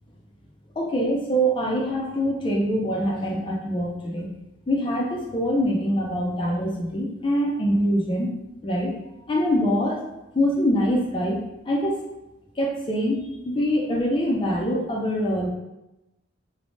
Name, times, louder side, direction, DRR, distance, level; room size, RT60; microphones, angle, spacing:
voice 1, 0.8-4.3 4.7-8.3 8.6-8.9 9.3-10.0 10.3-11.4 11.7-12.1 12.6-15.5, equal, 25° left, -1 dB, 0.3 m, -24 dB
3.2 x 2.0 x 2.6 m, 0.94 s
head